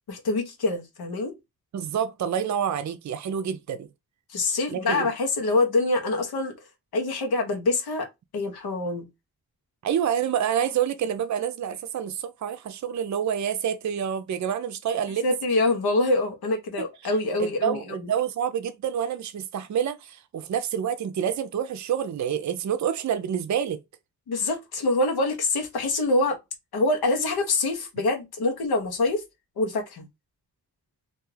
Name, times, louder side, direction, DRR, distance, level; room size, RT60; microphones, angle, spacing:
voice 1, 0.1-1.3 4.3-6.6 6.9-8.1 8.3-9.1 15.2-18.1 24.3-26.4 26.7-29.3 29.6-30.1, left 2 dB, 85° left, 0.9 m, -25 dB
voice 2, 1.7-3.9 4.7-5.0 9.8-15.2 17.4-23.8, right 8 dB, 50° right, 0.5 m, -28 dB
2.5 x 2.3 x 3.1 m
cardioid pair, 45°, 36 cm